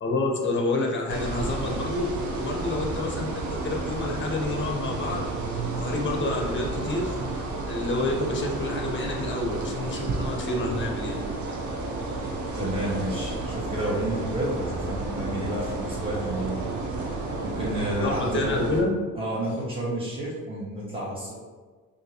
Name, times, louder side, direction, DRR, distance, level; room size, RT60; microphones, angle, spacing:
voice 1, 0.0-5.2 5.8-11.2 17.9-18.9, left 2 dB, 35° left, 0 dB, 0.8 m, -29 dB
sound 1, 1.1-18.8, right 3 dB, 60° right, 0.6 m, -31 dB
voice 2, 12.5-17.1 17.4-18.7 19.1-21.3, right 1 dB, 15° right, -7 dB, 1.4 m, -30 dB
3.7 x 2.6 x 2.8 m, 1.4 s
cardioid pair, 95°, 33 cm